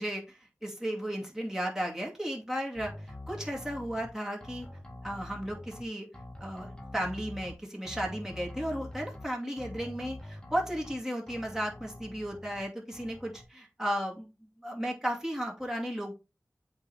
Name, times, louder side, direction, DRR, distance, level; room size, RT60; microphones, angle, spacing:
voice 1, 0.0-4.7 5.0-6.1 6.4-16.1, equal, 10° right, -1 dB, 2.3 m, -35 dB
sound 1, 2.8-4.1 4.4-5.8 6.1-7.5 7.9-9.2 9.6-11.0 11.3-12.6 12.9-13.4, left 1 dB, 10° left, 1.6 m, -45 dB
8.0 x 3.5 x 4.1 m, 0.28 s
wide cardioid pair, 60°, 6 cm